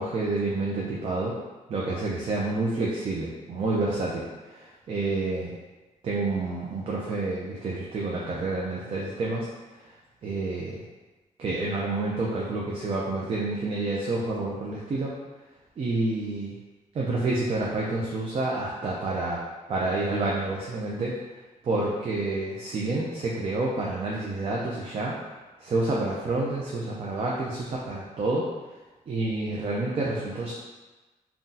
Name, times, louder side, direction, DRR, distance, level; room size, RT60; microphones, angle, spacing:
voice 1, 0.0-1.4 1.7-5.5 6.0-9.5 9.8-9.9 10.2-10.8 11.4-15.1 15.8-16.5 16.9-19.4 19.7-21.1 21.6-25.2 25.6-28.4 29.1-30.5, right 2 dB, 45° right, -4 dB, 0.5 m, -29 dB
3.7 x 2.2 x 2.7 m, 1.2 s
cardioid pair, 130°, 14 cm